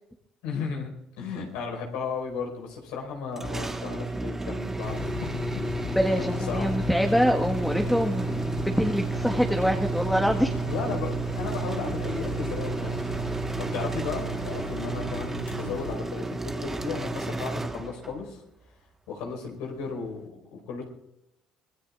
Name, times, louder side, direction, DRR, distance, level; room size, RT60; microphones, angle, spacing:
voice 1, 0.4-0.9 1.2-5.3 6.5-6.7 10.6-18.4 19.1-20.9, left 5 dB, 85° left, 1 dB, 4.8 m, -35 dB
sound 1, 3.4-18.3, right 2 dB, 15° right, 1.4 m, -32 dB
sound 2, 4.8-15.9, left 7 dB, 70° left, 0.9 m, -36 dB
voice 2, 5.9-10.5, equal, 5° left, 2 dB, 1.5 m, -25 dB
25.5 x 19.5 x 2.5 m, 0.90 s
supercardioid pair, 75°, 2 cm